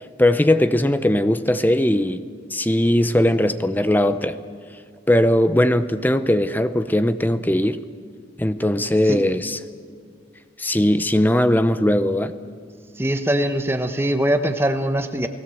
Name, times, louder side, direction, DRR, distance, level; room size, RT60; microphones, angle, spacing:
voice 1, 0.2-2.2 2.5-4.4 5.1-7.8 8.4-9.6 10.6-12.3, left 1 dB, 10° left, 11 dB, 0.7 m, -19 dB
voice 2, 13.0-15.3, right 1 dB, 10° right, 7 dB, 1.1 m, -22 dB
29.0 x 18.0 x 7.8 m, 2.2 s
head